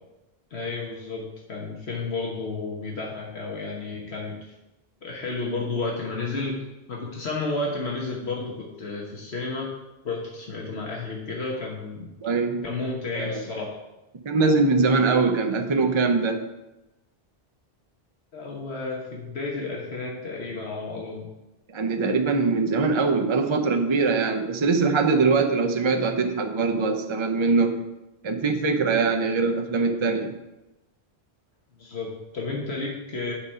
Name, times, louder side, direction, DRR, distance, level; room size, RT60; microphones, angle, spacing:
voice 1, 0.5-4.3 5.0-6.6 6.9-9.7 10.0-12.1 12.6-13.8 18.3-21.3 31.8-33.3, left 3 dB, 75° left, -2 dB, 1.5 m, -32 dB
voice 2, 12.2-12.6 13.1-13.4 14.3-16.5 21.7-27.8 28.2-30.4, right 4 dB, 35° right, 3 dB, 0.6 m, -22 dB
8.7 x 5.0 x 5.5 m, 0.98 s
omnidirectional pair, 1.1 m